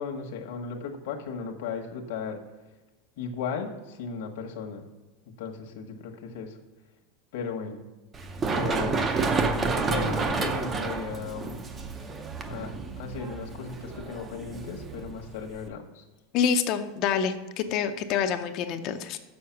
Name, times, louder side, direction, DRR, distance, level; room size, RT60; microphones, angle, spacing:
voice 1, 0.0-2.4 3.2-4.9 5.4-6.6 7.3-7.8 8.5-11.6 12.5-16.0, left 5 dB, 65° left, 2 dB, 1.2 m, -36 dB
Run, 8.1-15.7, right 4 dB, 20° right, 0.5 m, -30 dB
voice 2, 16.3-19.2, left 7 dB, 40° left, 7 dB, 0.5 m, -27 dB
6.8 x 6.4 x 5.7 m, 1.1 s
supercardioid pair, 160°, 0 cm